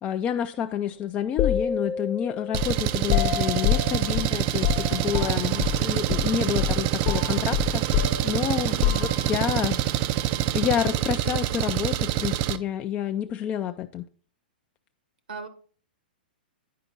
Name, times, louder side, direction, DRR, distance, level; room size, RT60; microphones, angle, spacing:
voice 1, 0.0-8.0 8.2-9.8 10.5-14.1, left 9 dB, 25° left, 0.4 m, -29 dB
sound 1, 1.4-5.8 6.1-6.3 6.6-9.5, left 11 dB, 40° left, 0.9 m, -28 dB
Engine, 2.5-12.6, right 13 dB, 40° right, 0.4 m, -26 dB
voice 2, 8.7-9.0 15.3-15.5, right 3 dB, 80° right, 1.5 m, -37 dB
9.3 x 5.0 x 3.9 m
hypercardioid pair, 115°, 5 cm